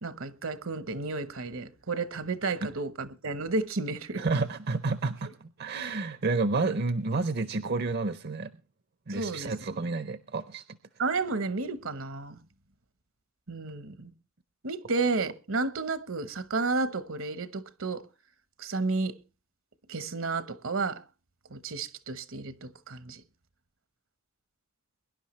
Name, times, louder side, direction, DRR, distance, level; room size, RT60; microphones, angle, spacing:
voice 1, 0.0-4.2 9.1-9.5 11.0-12.4 13.5-14.1 14.6-18.1 18.6-19.1 19.9-21.0 21.5-23.2, right 3 dB, 70° right, 1.1 m, -32 dB
voice 2, 4.2-8.5 9.1-10.6, right 3 dB, 50° right, 0.6 m, -30 dB
23.0 x 11.0 x 3.2 m
head